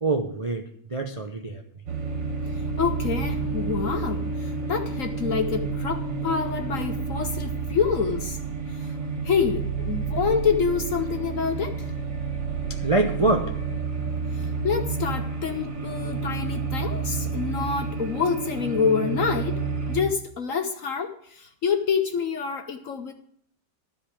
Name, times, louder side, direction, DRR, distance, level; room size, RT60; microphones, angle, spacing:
voice 1, 0.0-0.6 0.9-1.6 12.8-13.6, right 2 dB, 35° right, 0.5 m, -24 dB
sound 1, 1.9-20.0, right 4 dB, 75° right, 2.6 m, -30 dB
voice 2, 2.8-8.4 8.7-8.9 9.2-11.9 14.3-23.1, left 6 dB, 60° left, 0.9 m, -27 dB
12.5 x 5.3 x 8.6 m
omnidirectional pair, 2.0 m